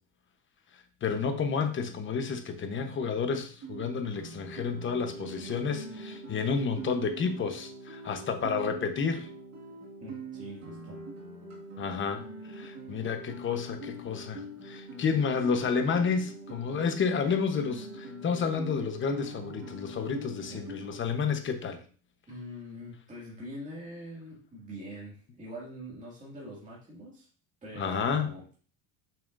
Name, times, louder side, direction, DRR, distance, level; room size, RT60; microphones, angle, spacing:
voice 1, 1.0-9.3 11.8-21.8 27.8-28.3, left 5 dB, 25° left, 7 dB, 1.0 m, -30 dB
Guitar, 3.6-21.0, right 1 dB, 35° right, 1.9 m, -43 dB
voice 2, 10.0-11.0 20.4-20.7 21.0-21.1 22.3-27.3 27.6-28.4, equal, 15° right, -5 dB, 2.1 m, -44 dB
7.3 x 5.8 x 2.6 m, 0.41 s
cardioid pair, 135°, 43 cm